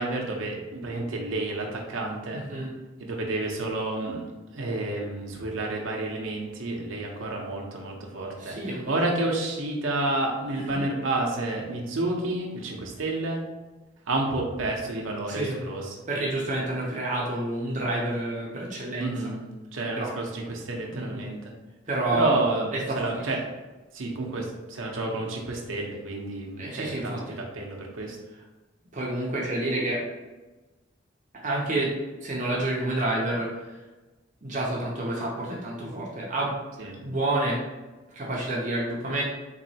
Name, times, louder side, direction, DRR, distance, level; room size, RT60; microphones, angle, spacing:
voice 1, 0.0-2.4 3.0-4.3 4.5-13.4 14.1-15.8 19.0-19.4 19.7-21.4 22.1-23.4 23.9-28.2 29.6-29.7 36.8-37.0, right 2 dB, 85° right, 0 dB, 0.7 m, -30 dB
voice 2, 2.3-2.7 8.4-9.0 10.5-10.8 15.3-15.6 16.1-19.1 19.9-20.1 20.9-21.2 21.9-22.4 22.7-23.1 26.6-27.4 28.9-30.0 31.4-31.9 32.2-33.7 34.4-37.6 38.1-39.2, right 1 dB, 40° right, -3 dB, 0.7 m, -29 dB
4.0 x 3.0 x 2.7 m, 1.2 s
head